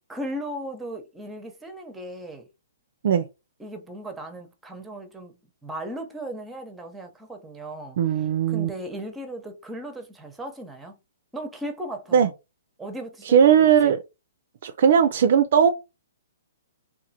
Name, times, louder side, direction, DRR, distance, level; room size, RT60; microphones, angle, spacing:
voice 1, 0.1-2.4 3.6-11.0 11.3-12.3 12.8-13.9, right 1 dB, 5° right, 0.6 m, -37 dB
voice 2, 8.0-8.7 12.1-12.3 13.2-14.0 14.6-15.7, right 8 dB, 60° right, 0.3 m, -18 dB
2.9 x 2.4 x 2.7 m
hypercardioid pair, 130°, 0 cm